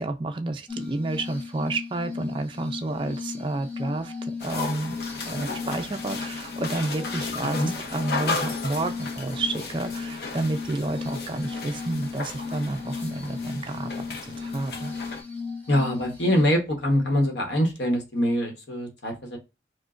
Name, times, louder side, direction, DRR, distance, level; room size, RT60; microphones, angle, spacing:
voice 1, 0.0-5.0 5.3-7.6 7.9-13.9 14.2-14.9, right 2 dB, 30° right, 0.4 m, -30 dB
Glass, 0.7-16.4, left 4 dB, 10° left, 0.8 m, -36 dB
sound 1, 4.4-15.2, left 3 dB, 60° left, 0.7 m, -35 dB
voice 2, 15.7-19.4, equal, 80° left, 1.0 m, -24 dB
4.7 x 2.1 x 2.4 m
head